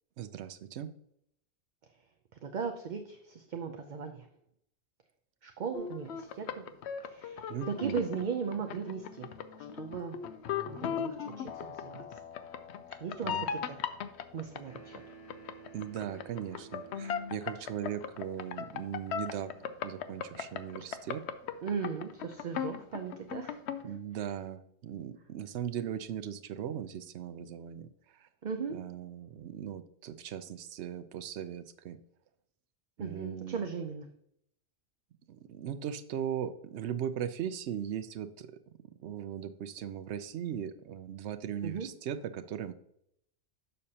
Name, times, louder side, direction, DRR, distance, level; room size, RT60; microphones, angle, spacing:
voice 1, 0.2-0.9 7.5-8.1 13.2-13.5 15.7-21.2 23.8-27.9 28.2-28.3 28.7-32.0 33.0-33.7 35.3-38.6 39.0-42.7, right 9 dB, 80° right, 11 dB, 0.9 m, -38 dB
voice 2, 2.4-4.3 5.4-6.7 7.1-9.3 9.8-10.2 10.7-12.2 13.0-13.8 14.3-15.0 21.6-24.3 28.4-28.8 33.0-34.1 41.6-41.9, right 6 dB, 50° right, 5 dB, 0.7 m, -37 dB
sound 1, 5.7-23.8, left 8 dB, 75° left, 0.9 m, -38 dB
sound 2, 14.6-18.0, right 6 dB, 60° left, 2.7 m, -53 dB
6.8 x 6.5 x 2.8 m, 0.72 s
omnidirectional pair, 1.1 m